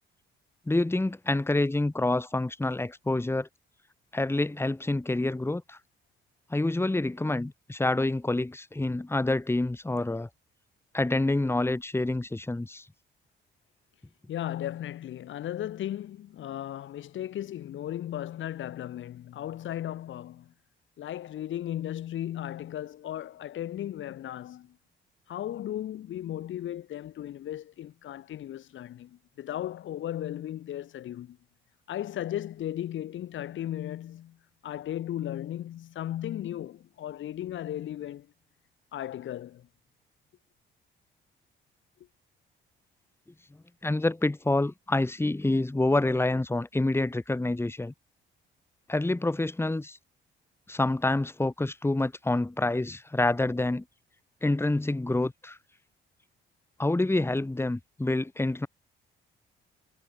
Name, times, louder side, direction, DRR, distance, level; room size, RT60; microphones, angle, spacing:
voice 1, 0.7-3.5 4.1-5.8 6.5-10.3 10.9-12.9 43.8-47.9 48.9-50.0 50.7-53.8 54.4-55.6 56.8-58.7, left 2 dB, 10° left, 2.8 m, -27 dB
voice 2, 14.3-20.5 21.0-24.8 25.3-31.4 31.9-34.4 34.6-38.3 38.9-39.7, left 12 dB, 75° left, 4.6 m, -36 dB
cardioid pair, 90°, 20 cm